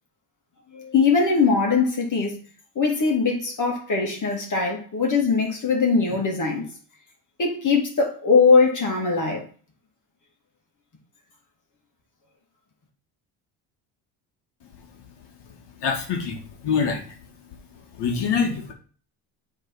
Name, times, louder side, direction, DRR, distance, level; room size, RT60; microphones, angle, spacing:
voice 1, 0.7-2.4 2.7-6.7 7.4-9.5, left 4 dB, 45° left, 2.7 m, -21 dB
voice 2, 15.8-17.2 18.0-18.7, left 6 dB, 70° left, 2.1 m, -25 dB
8.0 x 3.9 x 5.6 m
cardioid pair, 90°, 43 cm